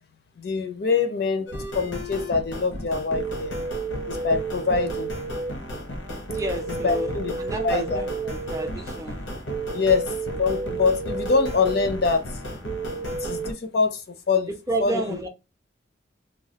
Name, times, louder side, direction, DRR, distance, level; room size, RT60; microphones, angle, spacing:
voice 1, 0.4-1.5 1.7-3.6 4.1-5.1 6.7-7.3 7.6-8.0 9.7-10.1 10.4-12.3 13.1-14.5 14.8-15.2, left 4 dB, 55° left, 0.4 m, -24 dB
sound 1, 1.5-13.5, right 2 dB, 90° left, 0.8 m, -31 dB
voice 2, 6.3-7.1 7.4-9.2 14.7-15.3, right 1 dB, 15° right, 0.4 m, -30 dB
3.1 x 2.2 x 2.7 m
head